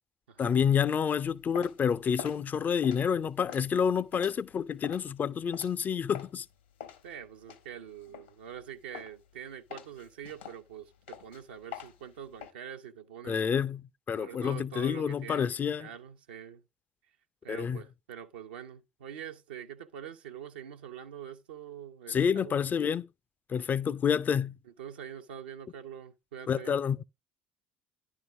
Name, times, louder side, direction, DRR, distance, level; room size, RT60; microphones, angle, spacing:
voice 1, 0.4-6.5 13.2-15.9 17.5-17.8 22.1-23.1 23.5-24.6 26.5-27.0, left 7 dB, 35° left, 0.5 m, -28 dB
sound 1, 1.2-6.4 6.8-8.6 8.9-9.3 9.7-12.5, left 9 dB, 75° left, 1.4 m, -46 dB
voice 2, 7.0-13.6 14.1-16.6 17.4-22.6 24.6-26.8, right 9 dB, 75° right, 0.7 m, -45 dB
10.5 x 3.6 x 6.0 m
figure-of-eight pair, 60°, 5 cm